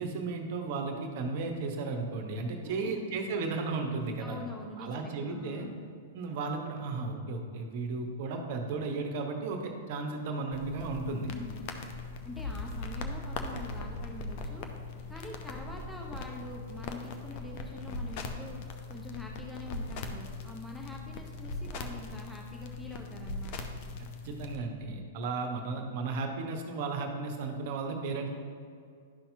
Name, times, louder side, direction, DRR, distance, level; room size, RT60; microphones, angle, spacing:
voice 1, 0.0-4.4 4.8-5.7 6.1-11.3 24.0-28.3, right 3 dB, 45° right, 3 dB, 1.0 m, -34 dB
voice 2, 2.6-3.2 4.2-5.8 11.2-11.8 12.2-14.7 15.1-18.6 18.9-23.7, left 1 dB, ahead, -1 dB, 0.8 m, -45 dB
sound 1, 10.5-24.6, left 3 dB, 40° left, 0.6 m, -40 dB
11.5 x 5.7 x 2.7 m, 2.4 s
figure-of-eight pair, 100°, 0 cm